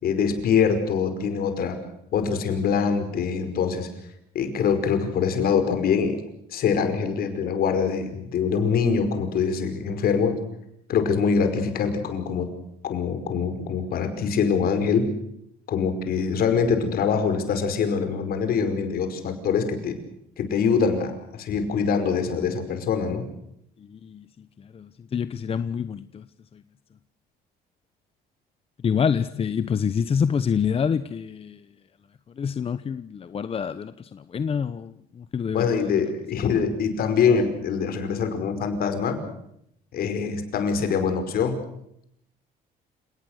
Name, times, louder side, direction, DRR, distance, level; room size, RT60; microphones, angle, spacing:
voice 1, 0.0-1.8 2.1-3.9 4.4-6.2 6.5-10.4 10.9-12.5 12.8-15.1 15.7-20.0 20.4-23.3 35.5-39.2 39.9-41.6, left 6 dB, 65° left, 5.2 m, -24 dB
voice 2, 23.8-24.2 24.6-26.2 26.5-26.6 28.8-31.6 32.4-35.9, left 7 dB, 35° left, 0.9 m, -27 dB
29.5 x 18.5 x 6.5 m
cardioid pair, 110°, 17 cm